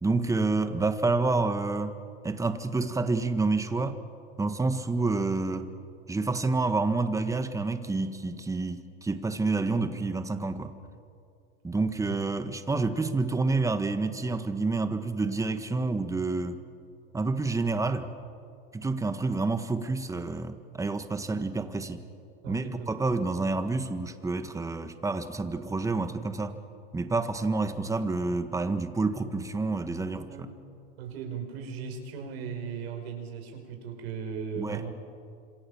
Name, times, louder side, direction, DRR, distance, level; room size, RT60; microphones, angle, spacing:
voice 1, 0.0-2.0 2.2-4.0 4.4-5.7 6.1-10.7 11.6-16.6 17.1-18.1 18.7-22.0 22.5-26.6 26.9-30.3 34.6-34.8, right 3 dB, 10° right, 9 dB, 1.7 m, -28 dB
voice 2, 22.4-23.1 30.3-30.5 31.0-34.9, right 6 dB, 90° right, 4 dB, 5.3 m, -37 dB
27.0 x 26.5 x 7.2 m, 2.4 s
supercardioid pair, 120°, 30 cm